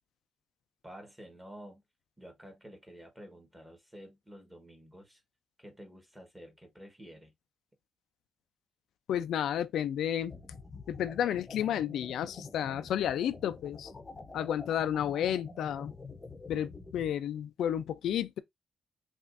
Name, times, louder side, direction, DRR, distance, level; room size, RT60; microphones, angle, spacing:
voice 1, 0.8-1.8 2.2-5.2 5.6-7.3, equal, 10° right, 1.1 m, -50 dB
voice 2, 9.1-10.3 10.9-13.9 14.3-15.9 16.5-18.4, left 10 dB, 80° left, 0.3 m, -31 dB
sound 1, 10.3-17.1, left 3 dB, 20° left, 0.7 m, -47 dB
5.7 x 2.4 x 2.5 m
wide cardioid pair, 170°, 0 cm